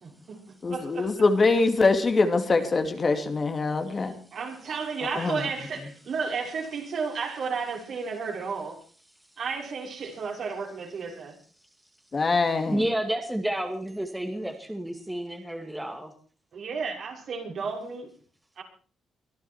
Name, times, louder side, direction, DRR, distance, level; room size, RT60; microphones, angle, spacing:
voice 1, 0.0-0.4 0.7-1.1 4.3-8.8 9.4-11.4 16.5-18.1 18.6-18.7, right 5 dB, 60° right, 5.7 m, -33 dB
voice 2, 0.6-4.1 5.1-5.4 12.1-12.8, left 3 dB, 35° left, 2.5 m, -23 dB
voice 3, 12.7-16.1, right 1 dB, 5° right, 2.3 m, -30 dB
23.0 x 11.5 x 4.5 m
cardioid pair, 95°, 0 cm